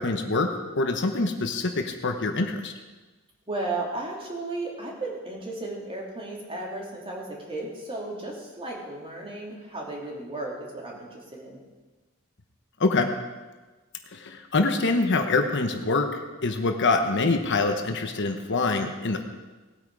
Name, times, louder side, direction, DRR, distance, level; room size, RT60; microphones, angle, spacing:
voice 1, 0.0-2.7 12.8-13.1 14.1-19.2, left 3 dB, 55° left, 5 dB, 1.1 m, -25 dB
voice 2, 3.5-11.6, right 2 dB, 25° right, -2 dB, 2.9 m, -34 dB
18.5 x 8.9 x 4.9 m, 1.3 s
head